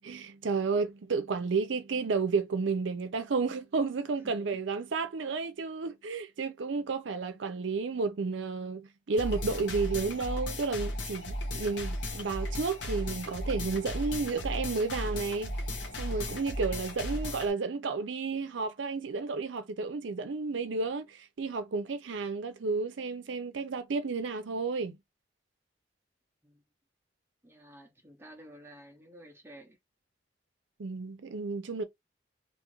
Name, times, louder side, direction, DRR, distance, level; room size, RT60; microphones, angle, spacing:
voice 1, 0.0-15.5 16.0-25.0 30.8-31.8, right 4 dB, 75° right, 0.5 m, -32 dB
sound 1, 9.2-17.5, left 1 dB, 70° left, 0.8 m, -35 dB
voice 2, 27.4-29.8, right 1 dB, 15° right, 0.6 m, -51 dB
2.6 x 2.4 x 2.9 m
head